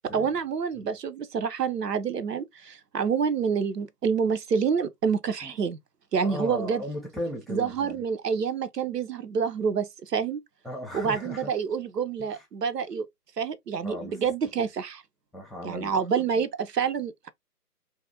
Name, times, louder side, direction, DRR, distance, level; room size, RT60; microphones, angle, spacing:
voice 1, 0.1-5.8 6.1-6.8 7.5-10.4 10.9-13.1 13.4-15.0 15.6-17.3, right 6 dB, 85° right, 0.6 m, -27 dB
voice 2, 6.2-8.0 10.6-11.5 12.3-12.4 13.8-14.2 15.3-16.0, left 1 dB, ahead, 0.3 m, -36 dB
2.6 x 2.4 x 2.7 m
figure-of-eight pair, 140°, 47 cm